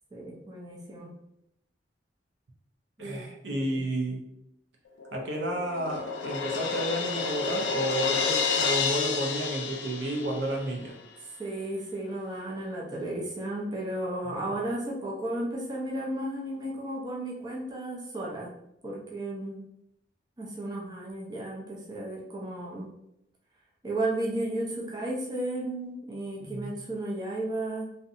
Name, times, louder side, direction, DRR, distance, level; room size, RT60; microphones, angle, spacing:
voice 1, 0.1-1.1 3.0-3.2 3.5-3.9 11.4-18.5 18.8-19.6 20.4-22.9 23.8-27.9, right 1 dB, 25° right, -4 dB, 0.5 m, -34 dB
voice 2, 3.0-4.2 5.1-10.9 14.3-14.5 26.4-26.8, right 1 dB, 75° right, 0 dB, 0.6 m, -31 dB
Crash cymbal, 5.0-10.7, left 5 dB, 80° left, 0.3 m, -30 dB
2.7 x 2.2 x 2.5 m, 0.80 s
head